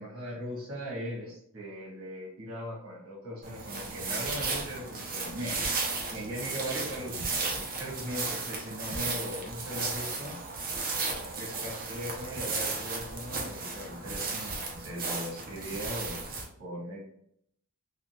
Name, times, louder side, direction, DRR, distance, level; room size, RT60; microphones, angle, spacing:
voice 1, 0.0-5.6 6.1-10.4 11.3-16.2 16.6-17.0, equal, 75° right, -4 dB, 1.3 m, -39 dB
sound 1, 3.4-16.4, right 3 dB, 40° right, 0.7 m, -34 dB
3.7 x 2.4 x 2.3 m, 0.69 s
head